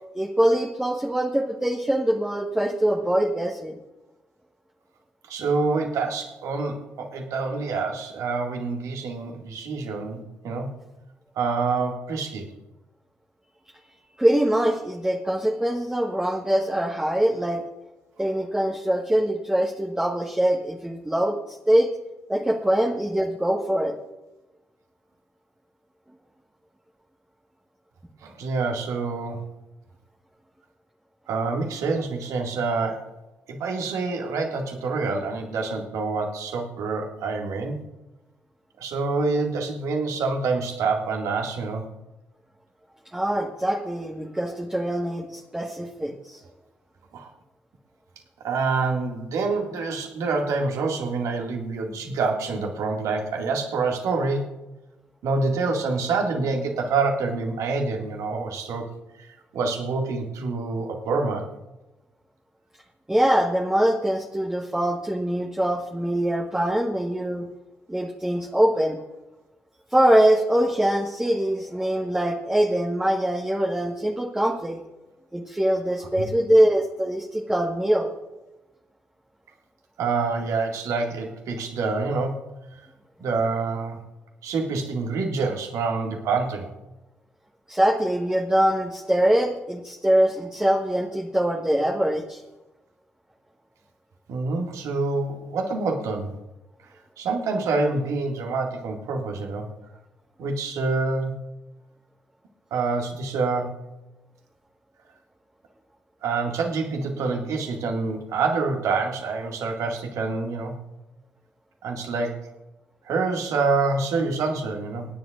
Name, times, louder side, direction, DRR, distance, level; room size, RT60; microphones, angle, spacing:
voice 1, 0.1-3.8 14.2-17.6 18.2-21.9 22.3-23.9 43.1-46.4 63.1-67.5 67.9-69.0 69.9-74.8 75.3-78.1 87.7-92.4, right 1 dB, 10° right, 0 dB, 1.6 m, -23 dB
voice 2, 5.3-10.7 11.4-12.5 28.2-29.4 31.3-33.1 33.5-37.8 38.8-41.9 47.1-47.3 48.4-54.5 55.2-61.5 76.2-76.3 80.0-82.5 82.8-82.9 83.2-84.0 84.4-86.7 94.3-96.3 97.2-99.7 100.4-101.3 102.7-103.8 106.2-110.7 111.8-112.5 113.1-115.1, right 4 dB, 60° right, 1 dB, 2.3 m, -27 dB
27.0 x 10.0 x 2.6 m, 1.0 s
figure-of-eight pair, 40°, 6 cm